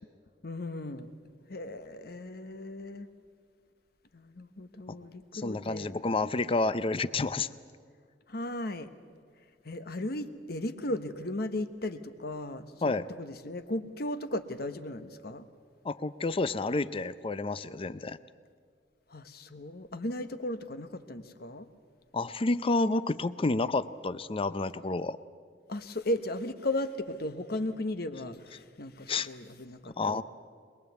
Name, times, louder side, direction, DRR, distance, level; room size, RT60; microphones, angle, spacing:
voice 1, 0.4-1.1 1.5-3.1 4.1-5.9 8.3-8.9 9.6-15.4 19.1-21.7 25.7-30.2, left 1 dB, 60° left, 10 dB, 1.1 m, -36 dB
voice 2, 5.4-7.5 12.8-13.1 15.8-18.2 22.1-25.2 29.1-29.3 29.8-30.2, left 3 dB, 30° left, 15 dB, 0.5 m, -29 dB
22.5 x 22.0 x 8.1 m, 2.1 s
head